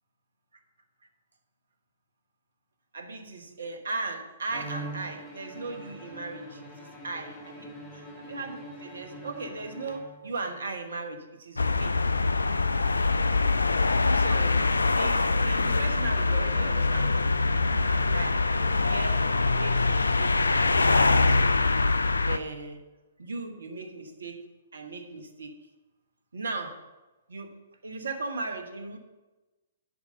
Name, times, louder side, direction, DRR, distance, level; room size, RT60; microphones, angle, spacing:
voice 1, 2.9-7.7 8.3-12.0 13.9-14.6 15.0-17.2 17.5-18.4 18.8-20.4 20.9-21.4 22.2-22.8 23.2-24.4 24.7-25.5 26.3-26.7 27.3-29.0, right 3 dB, 70° right, 6 dB, 1.1 m, -37 dB
Bowed string instrument, 4.5-10.5, right 1 dB, 15° left, 2.4 m, -43 dB
sound 1, 11.6-22.4, left 3 dB, 80° left, 0.4 m, -24 dB
7.4 x 4.9 x 6.5 m, 1.1 s
figure-of-eight pair, 120°, 0 cm